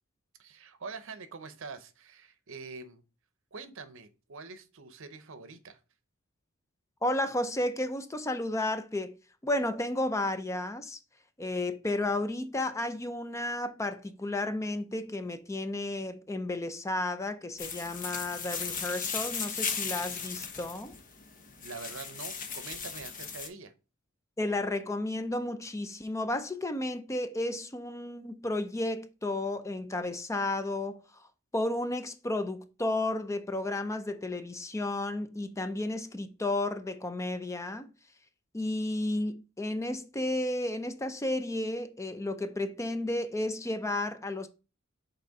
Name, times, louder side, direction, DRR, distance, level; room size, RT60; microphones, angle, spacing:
voice 1, 0.4-3.0 3.5-5.8 21.6-23.7, right 4 dB, 65° right, 0.8 m, -45 dB
voice 2, 7.0-9.2 9.4-11.0 11.4-21.0 24.4-31.2 31.5-37.9 38.5-44.5, left 2 dB, 15° left, 0.5 m, -32 dB
sound 1, 17.6-23.5, left 6 dB, 40° left, 1.0 m, -36 dB
6.7 x 4.2 x 3.6 m
head